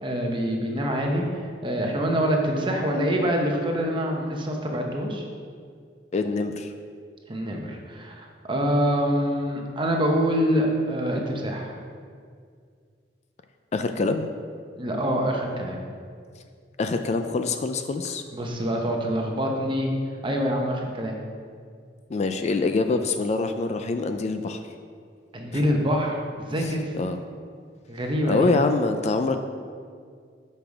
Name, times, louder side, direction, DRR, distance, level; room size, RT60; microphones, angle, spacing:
voice 1, 0.0-5.2 7.3-11.7 14.7-15.8 18.3-19.9 20.2-21.2 25.3-26.9 27.9-28.5, equal, 30° right, 1 dB, 0.9 m, -25 dB
voice 2, 6.1-6.7 13.7-14.3 16.8-18.2 22.1-24.6 25.5-25.6 26.6-27.2 28.3-29.4, left 3 dB, 40° left, 7 dB, 0.3 m, -25 dB
6.9 x 5.5 x 4.7 m, 2.1 s
head